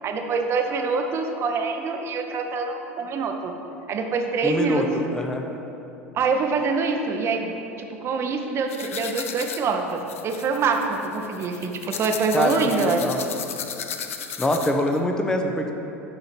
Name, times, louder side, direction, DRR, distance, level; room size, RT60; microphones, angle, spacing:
voice 1, 0.0-3.5 3.9-4.8 6.1-13.0, right 4 dB, 35° right, 4 dB, 0.8 m, -25 dB
voice 2, 4.4-5.4 12.3-13.2 14.4-15.7, left 1 dB, 10° left, 3 dB, 0.7 m, -24 dB
sound 1, 8.7-15.0, left 7 dB, 75° left, 0.4 m, -35 dB
11.0 x 3.8 x 4.5 m, 3.0 s
figure-of-eight pair, 75°, 7 cm